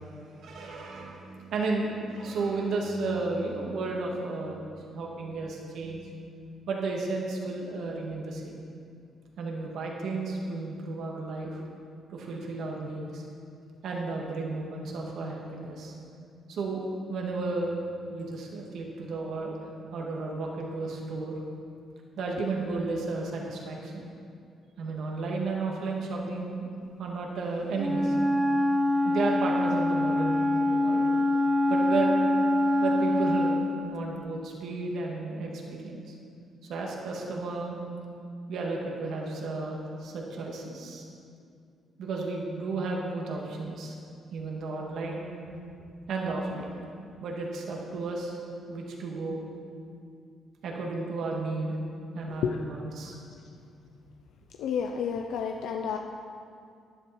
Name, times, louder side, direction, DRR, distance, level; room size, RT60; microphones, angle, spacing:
voice 1, 0.0-6.1 6.7-8.6 9.4-11.6 12.1-13.2 13.8-15.9 16.5-16.8 17.1-17.8 18.1-19.6 19.9-21.4 22.2-24.1 24.8-26.7 27.0-28.2 29.0-31.0 31.7-32.1 32.8-36.1 36.6-37.8 38.5-41.1 42.0-43.9 44.3-45.2 46.1-46.7 47.2-48.4 48.7-49.4 50.6-51.8 52.1-53.1, right 3 dB, 70° right, -1 dB, 2.1 m, -33 dB
Wind instrument woodwind instrument, 27.8-33.8, left 1 dB, 10° right, 1.0 m, -25 dB
voice 2, 54.6-56.0, left 7 dB, 85° left, 3 dB, 0.6 m, -30 dB
11.5 x 10.5 x 4.4 m, 2.4 s
cardioid pair, 90°, 0 cm